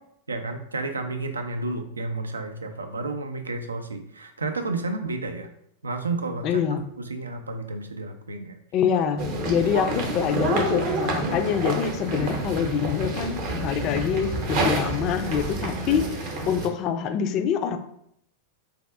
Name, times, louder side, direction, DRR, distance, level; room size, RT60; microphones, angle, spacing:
voice 1, 0.3-5.5 5.8-6.6 7.1-8.6, right 3 dB, 75° right, 7 dB, 0.4 m, -31 dB
voice 2, 6.4-6.9 8.7-16.2 16.5-17.8, left 8 dB, 40° left, 7 dB, 0.4 m, -25 dB
sound 1, 9.2-16.7, right 2 dB, 45° right, 0.7 m, -28 dB
4.1 x 2.3 x 3.4 m, 0.72 s
figure-of-eight pair, 90°, 0 cm